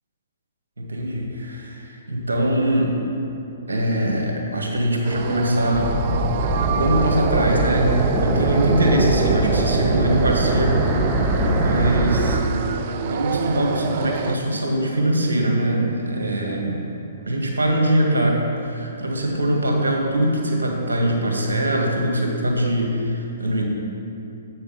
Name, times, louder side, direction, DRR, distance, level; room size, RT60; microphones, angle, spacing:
voice 1, 0.8-2.9 3.7-6.0 6.7-12.4 13.0-16.9 17.3-23.7, right 1 dB, 80° right, -1 dB, 1.7 m, -22 dB
sound 1, 5.0-14.4, right 7 dB, 45° right, 0.4 m, -30 dB
sound 2, 5.7-12.4, right 2 dB, 25° right, 0.9 m, -21 dB
8.0 x 6.6 x 5.5 m, 2.8 s
figure-of-eight pair, 125°, 0 cm